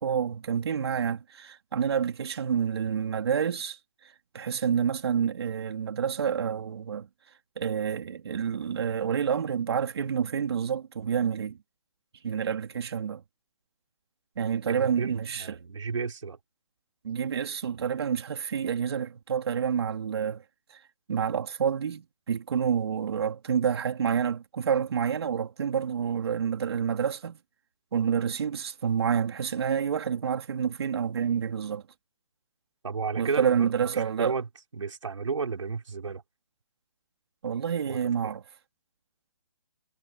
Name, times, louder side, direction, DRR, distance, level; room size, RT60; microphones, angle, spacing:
voice 1, 0.0-3.8 4.3-7.1 7.6-11.6 12.2-13.2 14.4-15.6 17.0-20.4 21.1-27.4 27.9-31.8 33.2-34.3 37.4-38.4, right 7 dB, 55° right, 3.2 m, -28 dB
voice 2, 14.7-16.4 32.8-36.2 37.9-38.0, right 5 dB, 85° right, 4.2 m, -33 dB
hypercardioid pair, 165°, 15 cm